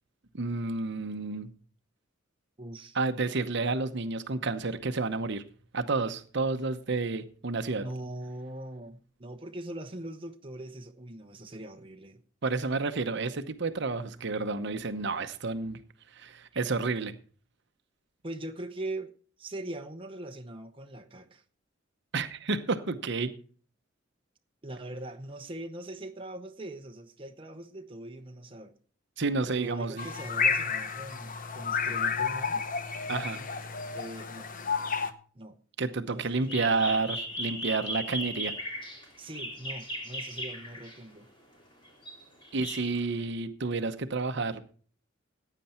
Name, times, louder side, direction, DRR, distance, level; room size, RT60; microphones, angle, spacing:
voice 1, 0.3-1.5 2.9-5.4 5.7-7.8 12.4-15.8 16.1-17.1 22.1-23.3 29.2-30.1 33.1-33.4 35.8-38.5 42.5-44.7, right 3 dB, 60° right, 0.9 m, -30 dB
voice 2, 2.6-3.0 7.8-12.2 18.2-19.1 19.4-21.4 24.6-28.7 29.5-32.7 33.9-34.5 35.3-35.6 36.1-36.2 39.2-41.3 42.8-42.9, right 1 dB, 25° right, 0.9 m, -41 dB
sound 1, 30.0-35.1, left 5 dB, 45° left, 0.9 m, -31 dB
sound 2, 36.3-41.1 41.8-43.2, equal, 25° left, 3.6 m, -37 dB
15.0 x 9.1 x 4.3 m
head